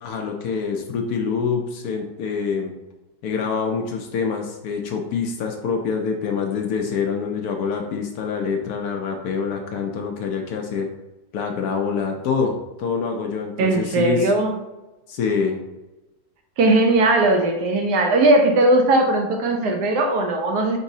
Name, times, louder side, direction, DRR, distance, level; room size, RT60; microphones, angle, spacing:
voice 1, 0.0-2.8 3.2-10.9 11.3-14.3 15.1-15.6, left 5 dB, 70° left, 3 dB, 1.0 m, -25 dB
voice 2, 13.6-14.5 16.6-20.8, right 2 dB, 70° right, 4 dB, 1.1 m, -18 dB
4.6 x 4.0 x 2.7 m, 1.0 s
omnidirectional pair, 1.9 m